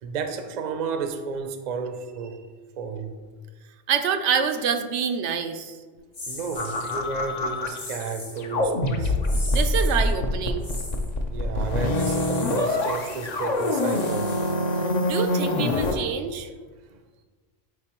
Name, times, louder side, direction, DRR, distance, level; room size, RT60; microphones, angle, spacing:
voice 1, 0.0-2.5 2.8-3.2 6.3-9.1 11.3-14.3 16.9-17.0, right 5 dB, 50° right, 6 dB, 0.6 m, -32 dB
voice 2, 3.9-5.8 9.5-10.7 14.8-16.5, right 7 dB, 85° right, 7 dB, 0.9 m, -26 dB
sound 1, 6.1-7.0 7.7-8.4 9.2-10.0 10.6-11.1 11.9-12.6 13.5-14.7, left 2 dB, 75° left, 2.2 m, -39 dB
sound 2, 6.6-8.1 8.4-16.0, left 2 dB, 45° left, 0.6 m, -25 dB
9.4 x 4.0 x 3.0 m, 1.4 s
omnidirectional pair, 1.2 m